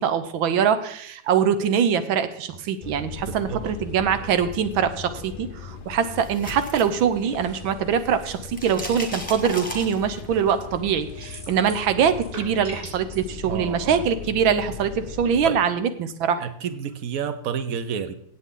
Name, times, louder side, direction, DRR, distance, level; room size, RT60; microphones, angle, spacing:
voice 1, 0.0-16.5, right 7 dB, 80° right, 11 dB, 1.7 m, -23 dB
sound 1, 2.8-15.5, left 5 dB, 85° left, 0.4 m, -39 dB
voice 2, 3.2-3.7 13.4-14.0 15.4-15.6 16.4-18.1, right 7 dB, 55° right, 11 dB, 1.1 m, -30 dB
sound 2, 6.0-7.7 7.9-10.4, left 1 dB, 5° left, 1.6 m, -36 dB
sound 3, 11.2-11.9 12.1-13.2, equal, 25° right, 5.8 m, -39 dB
16.5 x 8.2 x 3.8 m, 0.67 s
omnidirectional pair, 2.1 m